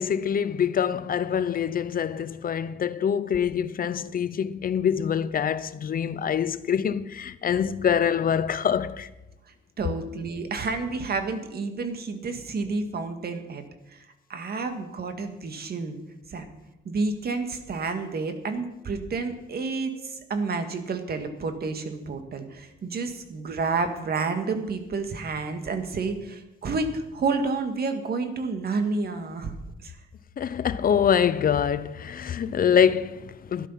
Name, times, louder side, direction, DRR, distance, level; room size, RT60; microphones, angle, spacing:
voice 1, 0.0-9.1 30.4-33.7, left 8 dB, 45° left, 0.8 m, -25 dB
voice 2, 9.8-13.6 13.9-16.0 16.3-16.5 16.9-29.6 29.8-29.9, right 4 dB, 50° right, 2.0 m, -30 dB
13.0 x 11.0 x 5.8 m
cardioid pair, 90°, 20 cm